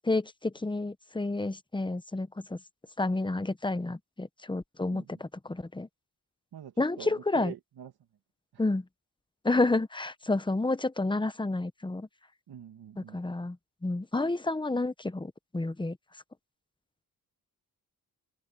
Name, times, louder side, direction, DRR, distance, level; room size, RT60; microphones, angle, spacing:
voice 1, 0.0-2.6 3.0-5.9 6.8-7.5 8.6-8.8 9.4-12.1 13.0-13.6 13.8-16.0, left 2 dB, 15° left, 0.9 m, -30 dB
voice 2, 4.9-5.2 6.5-7.9 8.5-8.6 12.5-13.2, right 9 dB, 80° right, 1.7 m, -45 dB
open air
cardioid pair, 95°, 37 cm